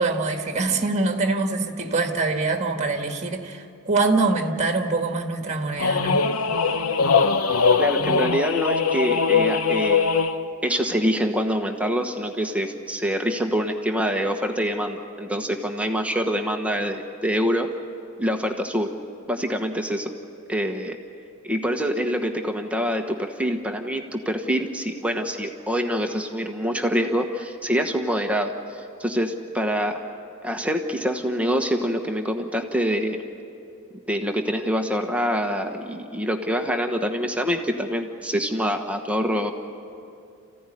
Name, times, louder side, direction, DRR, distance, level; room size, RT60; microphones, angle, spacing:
voice 1, 0.0-6.3, right 3 dB, 30° right, 4 dB, 1.8 m, -24 dB
sound 1, 5.8-10.5, left 5 dB, 75° left, 0.9 m, -21 dB
voice 2, 7.8-10.3 10.6-17.7 18.2-18.9 19.3-20.1 20.5-21.0 21.4-30.0 30.4-33.2 34.1-39.5, equal, 5° right, 4 dB, 1.2 m, -25 dB
28.0 x 15.5 x 10.0 m, 2.5 s
head